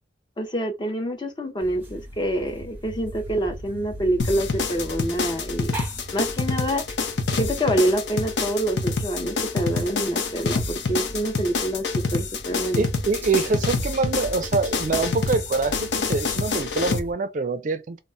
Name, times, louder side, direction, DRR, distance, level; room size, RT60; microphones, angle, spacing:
voice 1, 0.4-5.8 6.1-6.8 7.4-12.9, right 1 dB, 25° left, 0.5 m, -26 dB
sound 1, 1.6-17.1, right 1 dB, 10° right, 0.8 m, -40 dB
sound 2, 4.2-17.0, left 4 dB, 75° left, 0.5 m, -26 dB
voice 2, 12.6-18.0, right 4 dB, 45° right, 0.3 m, -25 dB
2.2 x 2.0 x 3.7 m
head